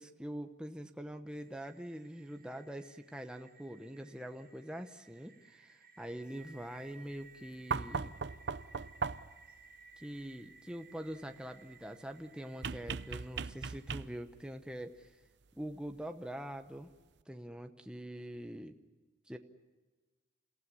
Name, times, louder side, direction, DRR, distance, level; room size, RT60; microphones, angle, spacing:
voice 1, 0.0-8.1 10.0-15.2 15.5-16.9 17.3-18.8 19.3-19.4, equal, 5° right, 5 dB, 0.9 m, -44 dB
sound 1, 1.3-13.9, right 4 dB, 45° right, 1.3 m, -60 dB
sound 2, 7.7-9.5 12.6-14.4 15.9-16.0, right 5 dB, 65° right, 0.7 m, -38 dB
30.0 x 16.0 x 9.8 m, 1.3 s
head